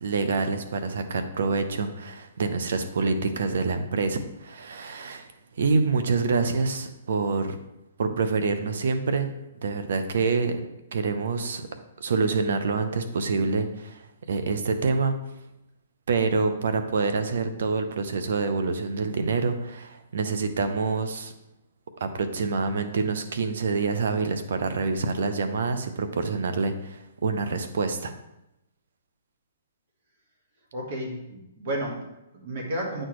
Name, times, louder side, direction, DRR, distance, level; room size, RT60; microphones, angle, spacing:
voice 1, 0.0-5.3 5.6-7.6 8.0-9.3 9.6-10.6 10.9-11.7 12.0-14.0 14.3-15.1 16.1-21.3 22.0-28.1, right 4 dB, 70° right, 8 dB, 0.7 m, -26 dB
voice 2, 30.7-33.1, right 1 dB, 50° right, 0 dB, 1.5 m, -32 dB
8.9 x 4.4 x 3.1 m, 0.89 s
hypercardioid pair, 150°, 0 cm